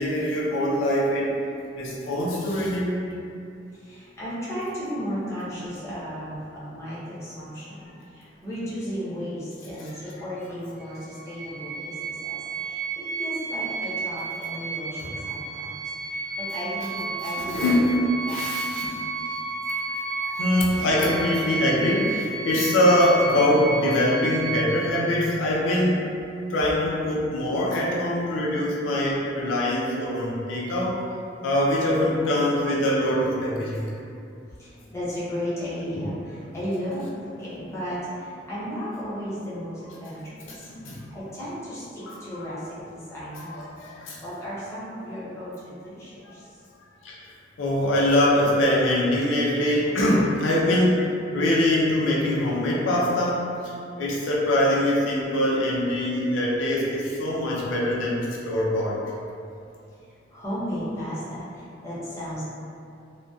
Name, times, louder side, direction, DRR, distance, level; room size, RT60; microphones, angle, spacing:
voice 1, 0.0-1.3 1.7-3.0 7.8-7.9 15.0-15.3 17.4-17.9 18.3-19.0 20.2-26.0 26.5-31.0 31.4-33.9 35.9-36.1 37.7-37.8 40.4-41.0 42.0-42.5 43.3-44.2 46.2-46.3 47.0-47.3 47.6-53.7 54.0-59.0, left 1 dB, 85° left, -5 dB, 0.4 m, -23 dB
voice 2, 3.7-18.4 34.6-40.7 41.1-43.6 44.2-46.5 59.8-62.4, equal, 15° left, -11 dB, 0.6 m, -35 dB
sound 1, 10.8-25.0, right 4 dB, 50° right, 0.4 m, -32 dB
2.5 x 2.1 x 2.3 m, 2.6 s
head